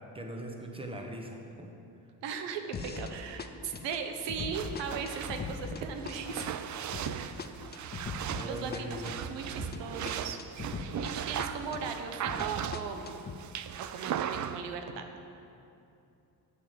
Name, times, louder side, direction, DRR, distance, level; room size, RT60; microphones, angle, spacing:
voice 1, 0.1-1.7 8.3-9.1 10.9-11.0, right 1 dB, 15° right, 2 dB, 1.1 m, -40 dB
voice 2, 2.2-6.7 7.1-7.3 8.3-10.4 10.7-13.2 13.8-15.0, right 6 dB, 90° right, 5 dB, 0.8 m, -38 dB
sound 1, 2.7-3.1 3.4-11.1 11.4-13.4, left 5 dB, 25° left, 0.5 m, -41 dB
sound 2, 4.5-14.6, right 9 dB, 45° right, 0.4 m, -38 dB
7.2 x 7.0 x 6.8 m, 2.7 s
cardioid pair, 90°, 42 cm